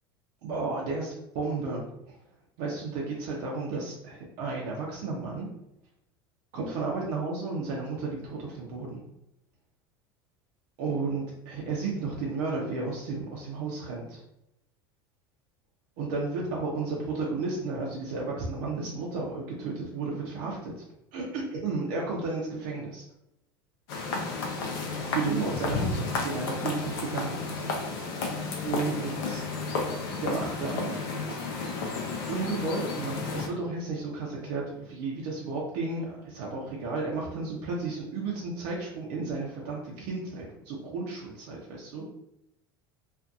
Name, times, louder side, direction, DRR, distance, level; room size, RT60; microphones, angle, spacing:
voice 1, 0.4-2.2 2.6-5.5 6.5-9.0 10.8-14.2 16.0-20.8 21.1-23.0 25.0-27.6 28.6-29.4 30.2-30.9 32.3-42.0, right 3 dB, 65° right, -3 dB, 0.6 m, -33 dB
sound 1, 23.9-33.5, left 3 dB, 70° left, 0.7 m, -32 dB
2.5 x 2.5 x 2.4 m, 0.85 s
hypercardioid pair, 80°, 13 cm